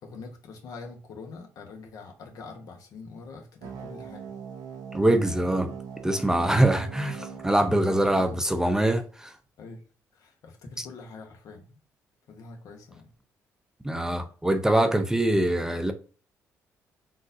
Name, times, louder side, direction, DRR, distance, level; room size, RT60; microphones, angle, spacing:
voice 1, 0.0-4.3 7.1-7.4 7.8-8.4 9.6-9.8 10.1-11.8 12.3-13.1, left 4 dB, 65° left, 1.0 m, -44 dB
sound 1, 3.6-8.6, right 7 dB, 75° right, 0.7 m, -41 dB
voice 2, 4.9-5.7 6.0-9.3 10.8-10.9 13.8-15.9, right 1 dB, 10° right, 0.5 m, -23 dB
3.8 x 2.6 x 2.6 m
supercardioid pair, 65°, 6 cm